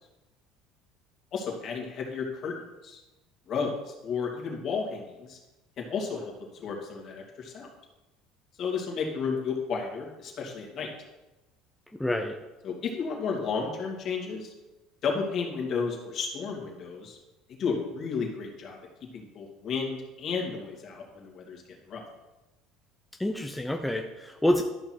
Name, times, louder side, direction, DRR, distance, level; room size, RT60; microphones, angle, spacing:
voice 1, 1.3-2.6 2.8-3.0 3.5-5.4 5.8-7.7 8.6-10.9 12.6-14.5 15.0-17.2 17.5-18.8 19.1-21.6 21.9-22.0, left 5 dB, 50° left, 0 dB, 2.7 m, -32 dB
voice 2, 12.0-12.4 23.2-24.6, left 1 dB, 5° left, 4 dB, 0.7 m, -27 dB
12.0 x 5.8 x 4.6 m, 1.0 s
supercardioid pair, 90°, 0 cm